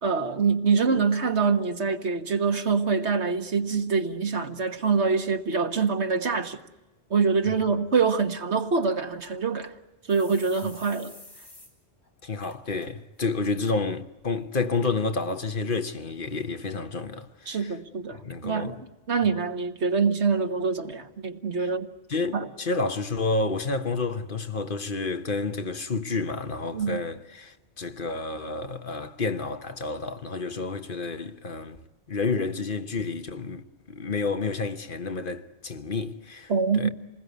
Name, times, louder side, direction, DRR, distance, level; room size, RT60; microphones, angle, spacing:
voice 1, 0.0-6.6 7.1-9.7 10.1-11.1 17.5-21.9 22.3-22.5 26.7-27.0 36.5-36.9, right 5 dB, 90° right, 1.8 m, -25 dB
sound 1, 9.1-9.2 9.6-9.7 10.1-11.7 12.0-12.1 12.4-12.9 13.2-13.5 14.2-14.3 14.8-15.0 15.7-15.8, left 2 dB, 85° left, 5.6 m, -49 dB
voice 2, 12.2-17.7 18.1-18.8 21.6-21.7 22.1-31.8 32.1-36.9, left 3 dB, 55° left, 1.3 m, -30 dB
27.5 x 20.5 x 9.5 m
omnidirectional pair, 1.1 m